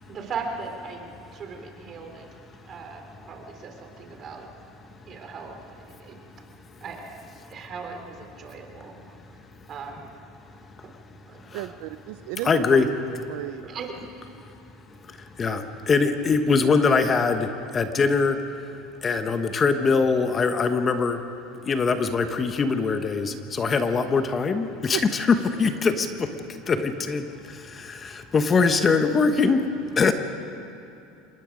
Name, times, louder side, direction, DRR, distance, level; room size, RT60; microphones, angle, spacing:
voice 1, 0.1-1.0 1.3-2.3 2.6-4.5 5.0-6.3 6.8-7.2 7.5-9.2 9.7-10.1 11.2-11.7 13.6-13.9, right 5 dB, 35° right, 3 dB, 3.3 m, -38 dB
voice 2, 11.5-12.9 13.3-13.6 24.9-25.0, right 17 dB, 70° right, 12 dB, 0.5 m, -33 dB
voice 3, 12.4-12.9 15.4-17.5 17.7-18.4 19.0-21.2 21.7-26.3 26.7-27.2 27.7-29.6 30.0-30.1, left 4 dB, 25° left, 8 dB, 1.2 m, -22 dB
26.5 x 21.0 x 5.2 m, 2.8 s
supercardioid pair, 125°, 0 cm